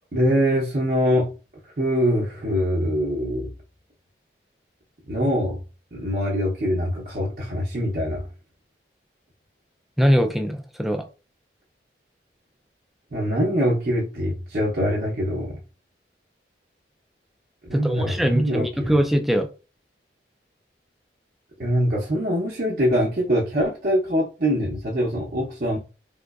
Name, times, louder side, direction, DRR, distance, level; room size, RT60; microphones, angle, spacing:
voice 1, 0.1-1.3 1.8-3.5 5.1-5.6 5.9-8.2 13.1-15.6 17.7-19.0 21.6-25.8, equal, 50° right, 0.7 m, -23 dB
voice 2, 10.0-11.0 17.7-19.5, equal, ahead, 0.3 m, -22 dB
3.6 x 3.0 x 2.3 m
head